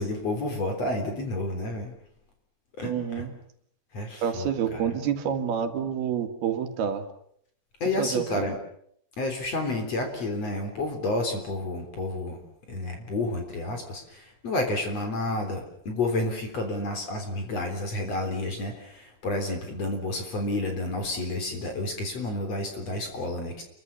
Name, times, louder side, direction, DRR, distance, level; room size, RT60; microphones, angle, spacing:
voice 1, 0.0-1.9 2.8-3.3 3.9-5.0 7.8-8.6 9.2-12.4 12.7-23.6, left 2 dB, 40° left, 4 dB, 4.6 m, -30 dB
voice 2, 2.8-3.3 4.2-7.0 8.0-8.5, right 8 dB, 75° right, 7 dB, 3.9 m, -28 dB
29.0 x 23.0 x 7.1 m, 0.69 s
omnidirectional pair, 4.6 m